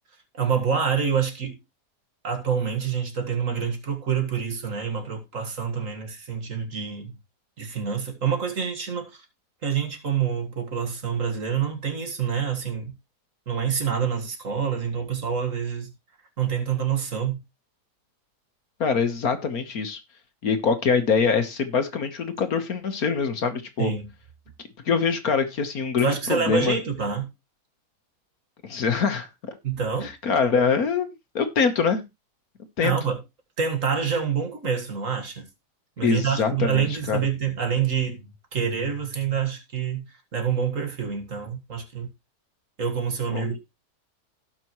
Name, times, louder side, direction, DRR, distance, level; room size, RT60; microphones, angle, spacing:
voice 1, 0.3-1.6 2.2-7.1 7.6-9.3 9.6-12.9 13.5-15.9 16.4-17.4 23.8-24.1 26.0-27.3 29.6-30.1 32.8-33.2 33.6-35.5 36.0-40.1 40.3-42.1 42.8-43.6, right 7 dB, 50° right, 2.0 m, -27 dB
voice 2, 18.8-20.0 20.4-23.9 24.8-26.7 28.6-29.6 30.2-32.0 32.8-32.9 36.0-37.2 43.3-43.5, left 5 dB, 60° left, 1.7 m, -24 dB
17.5 x 6.0 x 3.1 m
omnidirectional pair, 1.8 m